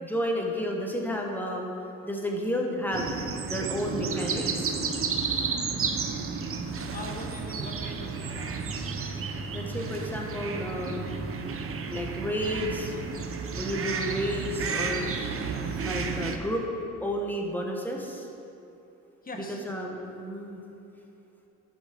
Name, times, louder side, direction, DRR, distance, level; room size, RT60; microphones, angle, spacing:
voice 1, 0.0-1.7 2.0-3.1 3.5-4.8 9.5-11.2 11.9-12.9 13.5-15.1 15.8-16.6 17.0-18.3 19.3-20.6, equal, 5° left, 0 dB, 1.4 m, -31 dB
sound 1, 2.9-16.4, right 5 dB, 45° right, 0.9 m, -32 dB
voice 2, 6.9-9.1 19.2-19.6, left 2 dB, 30° left, 2 dB, 1.4 m, -41 dB
11.5 x 6.4 x 5.2 m, 2.9 s
cardioid pair, 90°, 30 cm